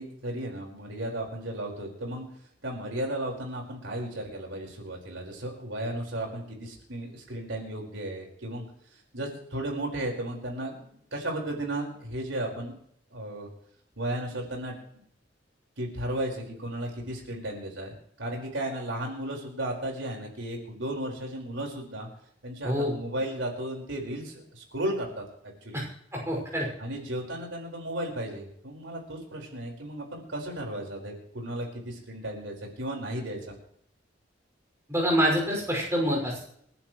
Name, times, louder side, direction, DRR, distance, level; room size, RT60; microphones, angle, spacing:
voice 1, 0.0-2.2 2.6-8.6 9.1-12.8 13.1-13.5 14.0-15.0 15.8-17.9 18.2-22.1 22.4-25.2 25.6-25.8 26.8-33.5, right 1 dB, 90° right, 0 dB, 4.8 m, -34 dB
voice 2, 26.1-26.7 34.9-36.4, equal, 15° right, -2 dB, 5.8 m, -26 dB
29.0 x 11.0 x 3.2 m, 0.68 s
head